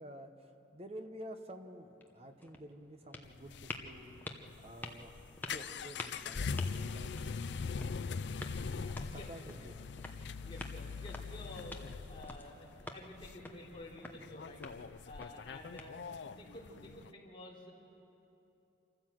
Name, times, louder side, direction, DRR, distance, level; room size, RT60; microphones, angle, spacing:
voice 1, 0.0-4.2 4.6-5.1 5.5-7.4 9.1-9.8, equal, 30° right, 6 dB, 1.1 m, -50 dB
sound 1, 1.8-16.4, left 2 dB, 10° left, 1.0 m, -50 dB
sound 2, 3.2-17.1, left 5 dB, 60° left, 0.5 m, -42 dB
voice 2, 8.8-9.6 10.4-17.7, left 1 dB, 25° left, -4 dB, 3.4 m, -51 dB
27.0 x 14.5 x 7.6 m, 2.9 s
head